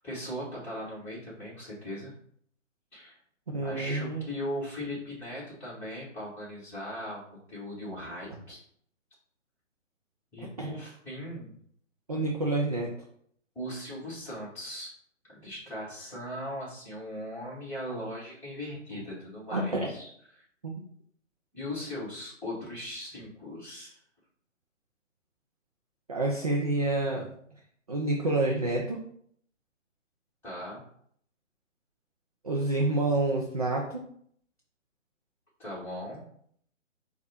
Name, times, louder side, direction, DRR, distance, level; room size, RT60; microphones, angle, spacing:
voice 1, 0.0-2.1 2.9-3.2 3.6-7.2 7.5-8.6 10.3-11.5 13.5-14.9 15.3-20.1 20.3-20.4 21.5-24.0 30.4-30.8 35.6-36.2, left 1 dB, 5° left, -9 dB, 1.6 m, -39 dB
voice 2, 3.5-4.2 10.6-10.7 12.1-12.9 19.5-19.9 20.6-20.7 26.1-27.3 27.9-29.0 32.4-34.0, right 2 dB, 30° right, -1 dB, 0.4 m, -28 dB
4.7 x 2.4 x 4.1 m, 0.64 s
figure-of-eight pair, 140°, 38 cm